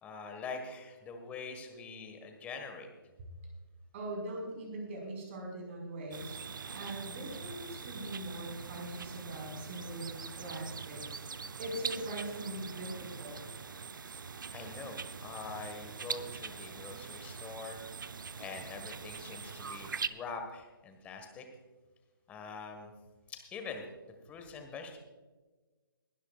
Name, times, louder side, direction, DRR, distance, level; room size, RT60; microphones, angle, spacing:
voice 1, 0.0-2.9 13.9-14.2 14.5-17.8 18.4-21.5 22.3-22.9 23.3-23.8 24.2-25.0, left 4 dB, 10° left, 5 dB, 1.5 m, -44 dB
voice 2, 3.9-6.4 6.7-13.4, right 1 dB, 30° right, 0 dB, 4.8 m, -41 dB
sound 1, 6.1-20.1, right 5 dB, 60° right, 0.7 m, -43 dB
21.5 x 12.0 x 2.4 m, 1.3 s
figure-of-eight pair, 140°, 12 cm